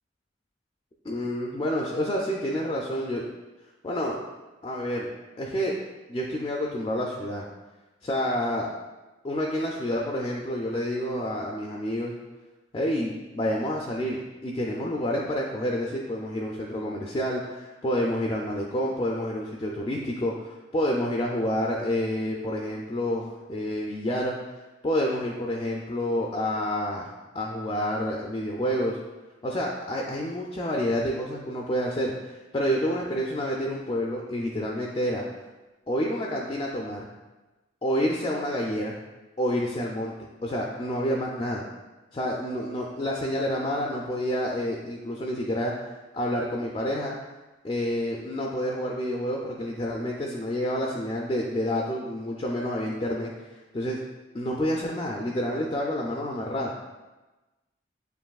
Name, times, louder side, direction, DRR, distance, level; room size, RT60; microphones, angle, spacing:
voice 1, 1.0-3.2 3.8-4.2 4.6-5.1 5.4-5.7 6.1-7.4 8.0-8.7 9.2-12.1 12.7-24.4 24.8-29.0 29.4-32.1 32.5-35.2 35.9-37.1 37.8-39.0 39.4-40.1 40.4-41.6 42.1-47.2 47.6-53.3 53.7-54.0 54.3-56.7, equal, 25° left, -2 dB, 0.4 m, -28 dB
7.7 x 2.6 x 2.3 m, 1.1 s
head